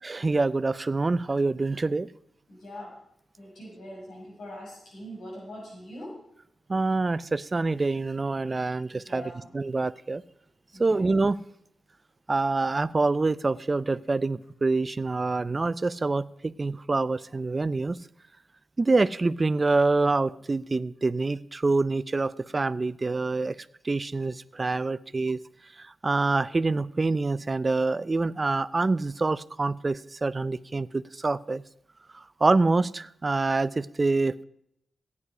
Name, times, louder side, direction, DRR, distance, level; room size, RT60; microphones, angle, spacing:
voice 1, 0.0-2.1 6.7-10.2 10.8-11.4 12.3-18.0 18.8-23.6 23.8-25.4 25.8-31.6 32.1-34.4, right 3 dB, 30° right, 16 dB, 0.4 m, -26 dB
voice 2, 2.5-2.9 3.4-6.2 8.9-9.5 10.7-11.0, equal, 90° left, -3 dB, 6.6 m, -42 dB
15.0 x 9.7 x 4.9 m, 0.73 s
wide cardioid pair, 100°, 0 cm